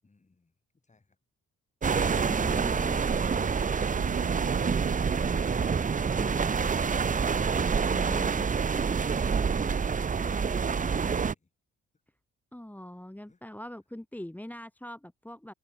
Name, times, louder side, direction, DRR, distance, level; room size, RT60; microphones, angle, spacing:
voice 1, 0.0-1.2 13.3-13.4, left 3 dB, 25° left, 7.7 m, -60 dB
sound 1, 1.8-11.3, right 5 dB, 25° right, 0.8 m, -27 dB
voice 2, 1.9-3.0 6.1-6.5 7.8-8.5 12.5-15.5, left 1 dB, 5° left, 2.6 m, -42 dB
sound 2, 3.9-8.1, right 11 dB, 70° right, 5.6 m, -45 dB
open air
cardioid pair, 90°, 30 cm